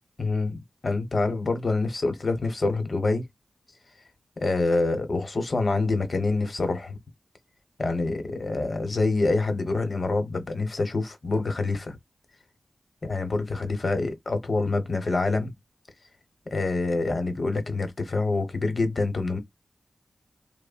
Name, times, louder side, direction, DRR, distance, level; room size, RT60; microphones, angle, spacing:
voice 1, 0.2-3.2 4.4-7.0 7.8-12.0 13.0-15.5 16.5-19.4, left 3 dB, 55° left, 0.9 m, -26 dB
3.1 x 2.1 x 2.4 m
wide cardioid pair, 70°, 0 cm